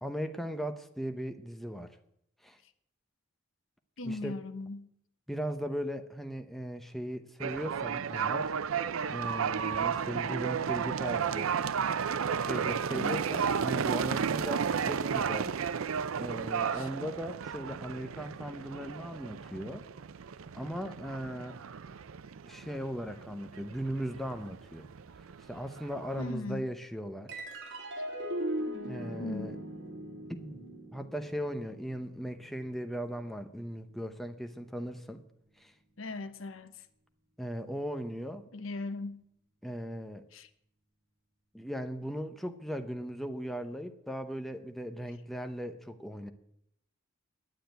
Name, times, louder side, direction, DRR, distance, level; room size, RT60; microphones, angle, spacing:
voice 1, 0.0-1.9 2.4-2.6 4.0-4.4 5.3-8.5 9.1-11.5 12.3-15.5 16.2-19.8 20.5-21.6 22.4-24.9 25.5-27.3 28.8-29.6 30.4-30.6 30.9-35.2 35.6-35.7 37.4-38.4 39.6-40.2 41.5-46.3, equal, ahead, 0.8 m, -38 dB
voice 2, 4.0-4.9 12.9-13.3 16.7-16.9 26.2-26.7 29.2-29.6 36.0-36.9 38.5-39.2 40.3-40.5, left 2 dB, 75° left, 0.9 m, -39 dB
sound 1, 7.4-26.3, right 7 dB, 80° right, 0.5 m, -33 dB
sound 2, 27.3-34.0, right 1 dB, 60° right, 2.9 m, -40 dB
9.8 x 9.2 x 9.1 m
head